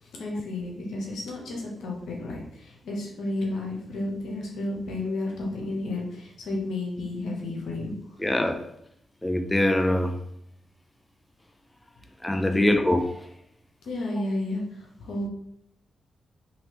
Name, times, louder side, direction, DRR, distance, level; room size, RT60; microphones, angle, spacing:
voice 1, 0.0-7.9 13.8-15.3, left 2 dB, 75° left, -1 dB, 0.8 m, -32 dB
voice 2, 8.2-8.7 9.2-10.2 12.2-13.1, left 1 dB, 15° left, 5 dB, 0.4 m, -23 dB
2.8 x 2.7 x 3.0 m, 0.73 s
supercardioid pair, 45°, 0 cm